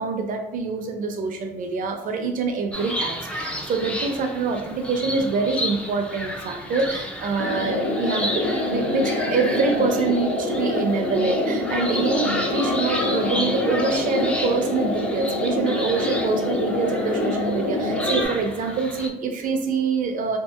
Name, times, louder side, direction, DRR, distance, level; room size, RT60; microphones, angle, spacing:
voice 1, 0.0-20.4, right 4 dB, 55° right, 4 dB, 0.5 m, -25 dB
sound 1, 2.7-19.1, left 1 dB, 5° left, 0.3 m, -32 dB
sound 2, 7.4-18.2, left 2 dB, 80° left, 0.8 m, -26 dB
2.7 x 2.5 x 2.3 m, 0.85 s
cardioid pair, 110°, 17 cm